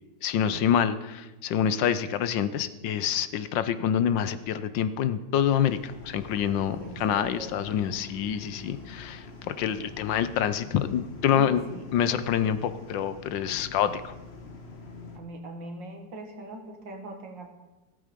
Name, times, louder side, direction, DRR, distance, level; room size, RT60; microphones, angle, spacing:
voice 1, 0.2-11.6 11.9-14.1, left 9 dB, 80° left, 13 dB, 1.5 m, -27 dB
sound 1, 5.6-15.2, left 3 dB, 35° left, 1.6 m, -45 dB
voice 2, 6.8-7.6 11.3-11.9 15.2-17.5, right 1 dB, 75° right, 4 dB, 2.5 m, -41 dB
15.5 x 13.0 x 5.1 m, 1.1 s
omnidirectional pair, 2.0 m